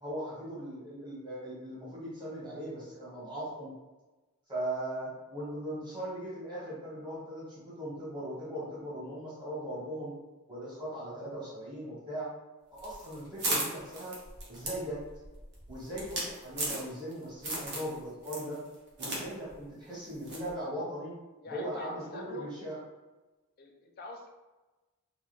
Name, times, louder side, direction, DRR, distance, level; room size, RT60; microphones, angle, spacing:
voice 1, 0.0-3.7 4.5-10.1 10.5-12.3 12.7-14.2 14.5-15.0 15.7-18.6 19.0-21.1 21.5-22.8, right 1 dB, 20° right, -9 dB, 1.2 m, -39 dB
sound 1, 12.8-17.1 17.4-17.9 18.2-19.2 19.5-19.6 20.3-20.5, right 1 dB, 50° right, 0.7 m, -35 dB
voice 2, 21.4-22.5 23.6-24.3, left 2 dB, 45° left, 1 dB, 0.4 m, -44 dB
2.3 x 2.3 x 3.1 m, 1.1 s
head